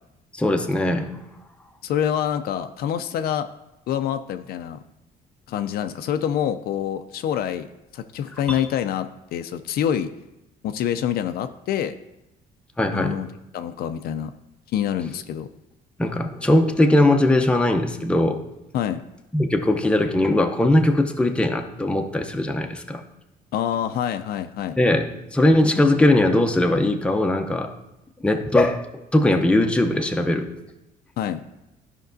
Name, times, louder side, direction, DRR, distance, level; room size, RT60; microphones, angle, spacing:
voice 1, 0.3-1.1 8.5-8.7 12.8-13.2 16.0-18.4 19.3-23.0 24.8-27.7 28.2-28.9 29.1-30.5, left 1 dB, 5° left, 4 dB, 0.6 m, -20 dB
voice 2, 1.8-3.5 3.9-4.8 5.5-7.7 7.9-10.1 10.6-11.9 12.9-13.3 13.5-14.3 14.7-15.5 18.7-19.0 23.5-24.8 31.2-31.4, left 9 dB, 65° left, 9 dB, 0.4 m, -26 dB
12.5 x 5.2 x 2.6 m, 0.92 s
cardioid pair, 110°, 17 cm